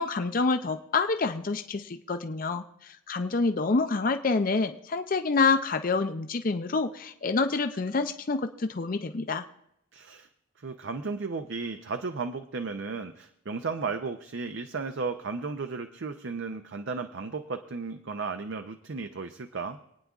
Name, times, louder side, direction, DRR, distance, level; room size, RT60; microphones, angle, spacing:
voice 1, 0.0-9.4, left 4 dB, 40° left, 8 dB, 0.5 m, -27 dB
voice 2, 9.9-10.3 10.6-19.8, right 4 dB, 60° right, 7 dB, 0.6 m, -34 dB
27.5 x 9.4 x 2.4 m, 0.80 s
head